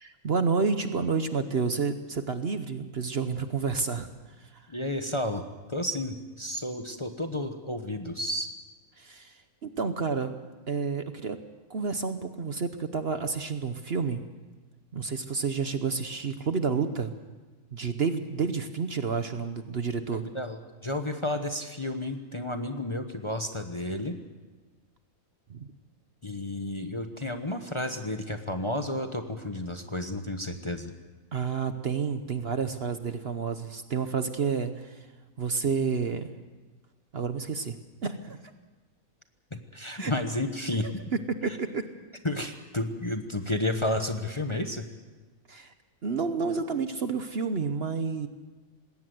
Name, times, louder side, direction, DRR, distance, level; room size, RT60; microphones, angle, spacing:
voice 1, 0.0-4.1 4.4-4.7 9.0-10.4 10.7-11.4 11.7-14.2 14.9-17.1 17.7-20.2 25.5-25.7 31.3-35.1 35.4-36.3 37.1-37.8 38.0-38.4 40.0-40.1 40.8-40.9 41.4-41.8 45.5-45.7 46.0-48.3, right 5 dB, 50° right, 9 dB, 1.1 m, -30 dB
voice 2, 4.7-8.5 20.1-24.2 26.2-30.9 39.5-41.0 41.5-41.6 42.2-44.9, left 1 dB, 20° left, 6 dB, 1.1 m, -32 dB
20.0 x 17.5 x 7.8 m, 1.3 s
omnidirectional pair, 1.5 m